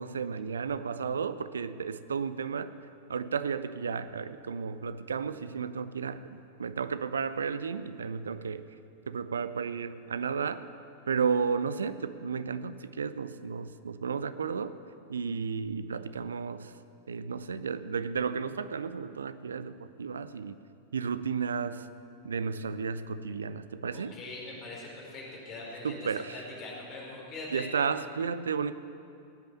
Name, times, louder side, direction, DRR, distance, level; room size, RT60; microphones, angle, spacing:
voice 1, 0.0-2.7 3.1-8.6 9.1-10.7 11.1-14.8 15.1-16.7 17.1-20.6 20.9-21.9 22.2-24.2 25.8-26.4 27.5-28.7, right 6 dB, 70° right, 13 dB, 0.6 m, -33 dB
voice 2, 23.9-26.0 26.3-27.7, left 2 dB, 35° left, -4 dB, 5.0 m, -42 dB
18.0 x 8.9 x 8.9 m, 2.6 s
figure-of-eight pair, 90°, 0 cm